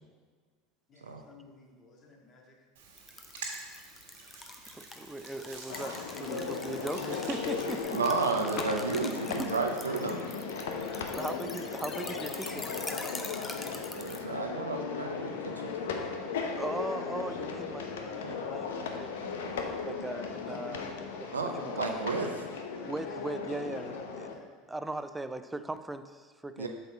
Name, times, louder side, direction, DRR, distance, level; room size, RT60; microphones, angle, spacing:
voice 1, 0.9-2.7 8.2-8.5 9.4-10.2 10.5-11.9 13.3-14.3 20.4-20.6 21.9-22.5 22.8-23.3 24.3-24.5 24.9-25.1, left 2 dB, 40° left, 0 dB, 1.8 m, -53 dB
Hands, 2.8-7.8, right 4 dB, 75° right, 1.6 m, -47 dB
sound 1, 3.0-14.2, left 3 dB, 20° left, 1.0 m, -44 dB
voice 2, 4.7-8.0 9.4-9.5 11.1-12.7 16.6-18.7 19.0-20.8 21.2-22.0 22.9-24.3 24.7-26.7, right 2 dB, 10° right, 10 dB, 0.5 m, -39 dB
sound 2, 5.7-24.3, left 5 dB, 75° left, 0.8 m, -37 dB
voice 3, 7.9-10.2 14.0-15.7 21.3-22.3 26.6-26.7, right 4 dB, 90° right, 3 dB, 0.6 m, -32 dB
8.0 x 6.7 x 4.2 m, 1.5 s
hypercardioid pair, 75°, 0 cm